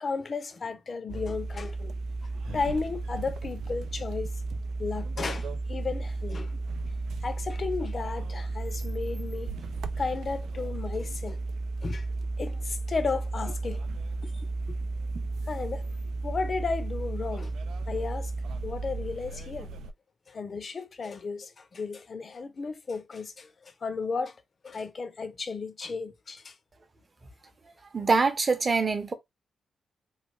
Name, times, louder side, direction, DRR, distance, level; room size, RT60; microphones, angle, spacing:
voice 1, 0.0-1.9 2.4-4.3 4.8-6.5 7.2-9.5 10.0-11.4 11.8-12.1 12.4-13.8 14.2-14.8 15.5-15.9 16.2-17.5 17.9-18.3 18.6-19.7 20.3-24.3 24.6-26.5, left 4 dB, 40° left, 0.6 m, -34 dB
sound 1, 1.1-19.9, right 3 dB, 80° right, 0.4 m, -34 dB
voice 2, 27.9-29.1, right 4 dB, 35° right, 0.7 m, -24 dB
3.2 x 2.3 x 3.1 m
cardioid pair, 105°, 0 cm